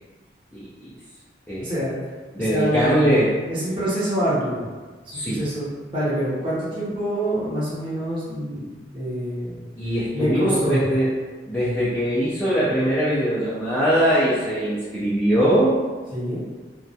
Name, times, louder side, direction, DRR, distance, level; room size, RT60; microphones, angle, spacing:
voice 1, 0.5-0.9 1.5-1.7 2.3-3.3 5.1-5.4 9.8-11.1 11.5-15.8, equal, 10° left, -10 dB, 0.3 m, -21 dB
voice 2, 1.6-2.0 2.4-3.0 3.5-4.7 5.2-9.6 10.1-10.8 16.1-16.4, equal, 25° right, -9 dB, 0.7 m, -26 dB
2.2 x 2.1 x 2.6 m, 1.4 s
head